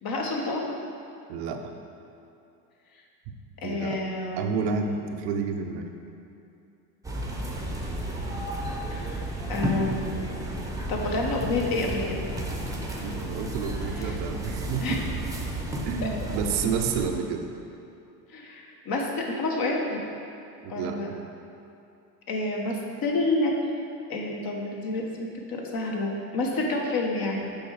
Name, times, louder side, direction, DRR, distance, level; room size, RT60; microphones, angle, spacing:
voice 1, 0.0-0.7 3.6-4.4 8.9-9.2 9.5-10.2 10.9-12.2 12.9-13.0 14.0-14.2 14.8-15.0 18.3-20.0 20.7-21.1 22.3-23.5 24.1-27.5, left 2 dB, 45° left, -1 dB, 1.4 m, -29 dB
voice 2, 1.3-1.6 3.6-4.0 4.4-5.9 13.0-15.0 15.9-17.4 20.6-21.0, right 5 dB, 70° right, 4 dB, 0.8 m, -30 dB
sound 1, 7.0-17.1, right 1 dB, 5° right, 0.9 m, -32 dB
7.2 x 4.6 x 4.8 m, 2.7 s
supercardioid pair, 95°, 48 cm